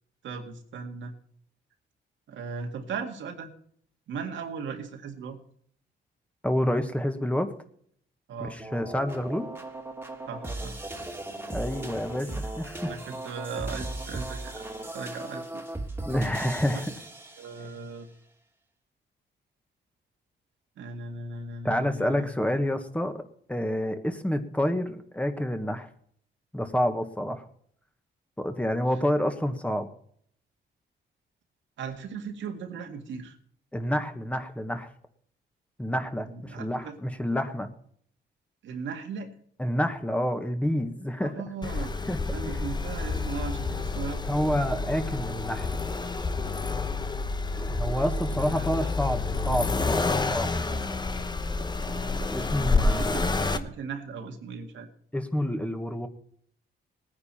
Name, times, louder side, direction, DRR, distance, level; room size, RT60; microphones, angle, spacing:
voice 1, 0.2-1.1 2.3-3.5 4.1-5.4 8.3-8.6 10.3-11.1 12.8-14.6 14.9-15.6 17.4-18.1 20.8-22.3 31.8-33.4 36.3-37.0 38.6-39.3 41.2-41.9 42.3-44.2 48.5-48.7 52.7-54.9, right 5 dB, 85° right, 4 dB, 2.0 m, -37 dB
voice 2, 6.4-7.5 8.7-9.5 11.5-13.0 16.0-16.9 21.6-23.2 23.5-25.9 26.5-27.4 28.4-29.9 33.7-34.9 35.8-37.7 39.6-41.3 42.1-42.2 44.3-45.7 47.5-50.5 52.3-53.3 55.1-56.1, equal, 5° left, 7 dB, 1.4 m, -28 dB
sound 1, 8.6-17.8, right 2 dB, 10° right, 2.0 m, -37 dB
Accelerating revving vroom, 41.6-53.6, left 3 dB, 20° left, 1.0 m, -29 dB
19.0 x 9.8 x 4.3 m, 0.63 s
cardioid pair, 100°, 19 cm